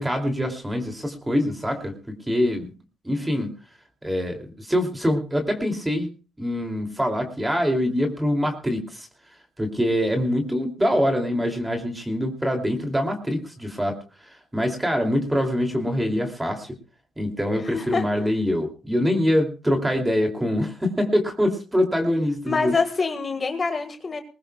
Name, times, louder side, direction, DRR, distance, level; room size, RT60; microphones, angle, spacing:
voice 1, 0.0-2.7 3.0-3.5 4.0-6.1 6.4-9.1 9.6-14.0 14.5-16.8 17.2-22.7, equal, 10° right, 4 dB, 2.7 m, -24 dB
voice 2, 17.6-18.0 22.5-24.2, left 4 dB, 35° left, 6 dB, 1.7 m, -25 dB
20.5 x 18.5 x 2.3 m, 0.35 s
cardioid pair, 90°, 0 cm